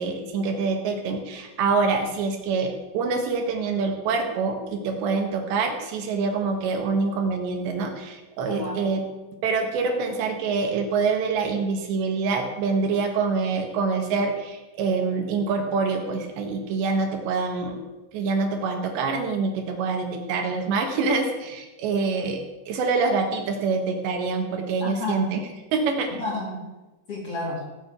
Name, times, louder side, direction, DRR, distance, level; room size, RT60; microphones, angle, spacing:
voice 1, 0.0-9.0 9.4-17.8 18.1-22.4 22.7-25.4 25.7-26.2, right 4 dB, 70° right, 4 dB, 3.7 m, -25 dB
voice 2, 8.5-8.9 24.8-25.3 26.1-26.6 27.1-27.6, left 2 dB, 35° left, -2 dB, 3.1 m, -31 dB
16.0 x 7.6 x 8.1 m, 1.1 s
omnidirectional pair, 5.3 m